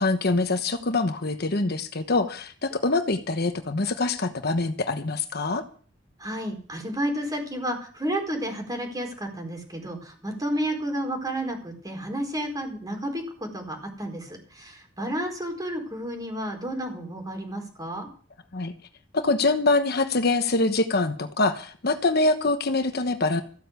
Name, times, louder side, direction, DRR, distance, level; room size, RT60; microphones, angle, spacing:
voice 1, 0.0-5.6 18.5-18.7 19.1-23.4, left 3 dB, 60° left, 8 dB, 1.2 m, -24 dB
voice 2, 6.2-18.1, right 1 dB, 20° right, 3 dB, 4.5 m, -31 dB
15.0 x 8.4 x 8.3 m, 0.43 s
head